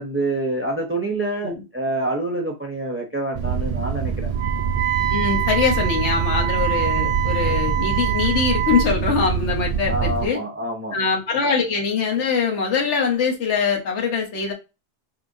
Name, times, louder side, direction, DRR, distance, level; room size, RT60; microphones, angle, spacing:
voice 1, 0.0-4.3 9.8-11.0, right 2 dB, 15° right, 0.5 m, -26 dB
sound 1, 3.3-10.3, right 6 dB, 65° right, 0.3 m, -25 dB
Wind instrument woodwind instrument, 4.4-8.9, right 12 dB, 85° right, 0.9 m, -25 dB
voice 2, 5.1-10.4 10.9-14.5, left 5 dB, 75° left, 1.3 m, -23 dB
4.9 x 2.8 x 2.6 m
omnidirectional pair, 1.2 m